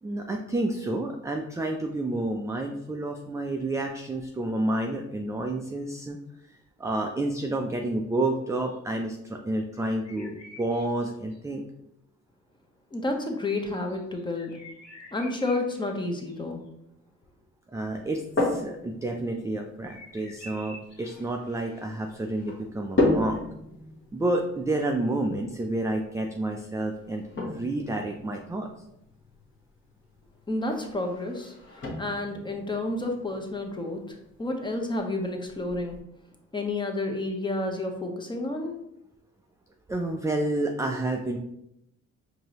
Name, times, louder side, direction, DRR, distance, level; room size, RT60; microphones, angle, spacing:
voice 1, 0.0-6.2 6.8-11.6 17.7-23.4 24.1-27.2 27.5-28.7 39.9-41.4, right 2 dB, 10° right, 2 dB, 0.3 m, -29 dB
sound 1, 9.7-11.4 13.3-16.7 19.9-21.9, left 1 dB, 60° left, 1.2 m, -49 dB
voice 2, 12.9-14.5 15.1-16.6 30.5-31.5 32.0-36.0 36.5-38.8, left 2 dB, 15° left, 3 dB, 0.7 m, -30 dB
sound 2, 17.9-36.0, left 2 dB, 40° left, 1.2 m, -35 dB
4.7 x 2.7 x 2.9 m, 0.80 s
cardioid pair, 90°, 30 cm